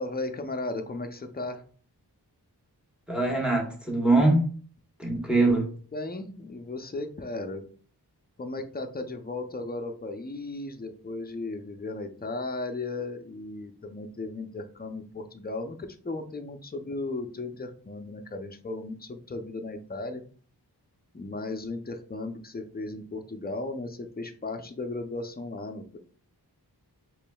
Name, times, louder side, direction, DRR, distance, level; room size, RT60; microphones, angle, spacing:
voice 1, 0.0-1.6 5.9-7.6 8.4-20.2 21.1-26.0, left 2 dB, 25° left, 0.5 m, -36 dB
voice 2, 3.1-4.5 5.0-5.7, right 2 dB, ahead, 1.2 m, -23 dB
5.0 x 3.1 x 2.2 m
wide cardioid pair, 80°, 40 cm